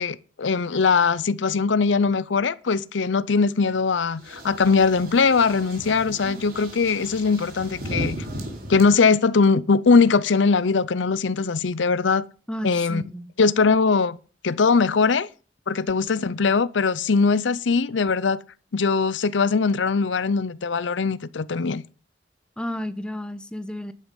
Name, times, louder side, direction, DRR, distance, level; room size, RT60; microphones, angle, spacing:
voice 1, 0.0-8.2 8.7-12.2 12.6-13.0 13.4-14.2 14.4-15.3 15.7-18.4 18.7-21.8, left 4 dB, 85° left, 0.6 m, -21 dB
sound 1, 4.2-8.8, right 1 dB, 55° right, 4.1 m, -35 dB
voice 2, 12.5-13.3 22.6-23.9, left 1 dB, 5° left, 0.8 m, -32 dB
11.5 x 9.5 x 5.2 m
head